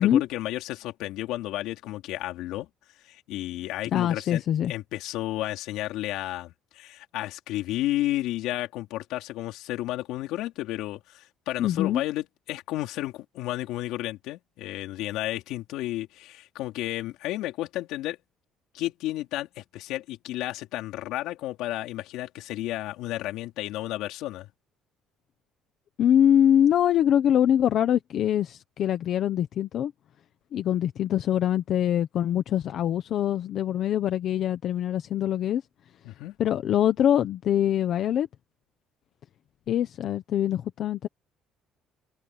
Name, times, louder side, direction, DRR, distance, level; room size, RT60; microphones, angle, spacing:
voice 1, 0.0-2.7 3.0-4.4 4.7-18.2 18.7-24.5 36.0-36.4, left 15 dB, 75° left, 3.8 m, -32 dB
voice 2, 3.9-4.7 11.6-12.0 26.0-29.9 30.5-35.6 36.4-38.3 39.7-41.1, left 10 dB, 45° left, 1.0 m, -23 dB
cardioid pair, 170°, 0 cm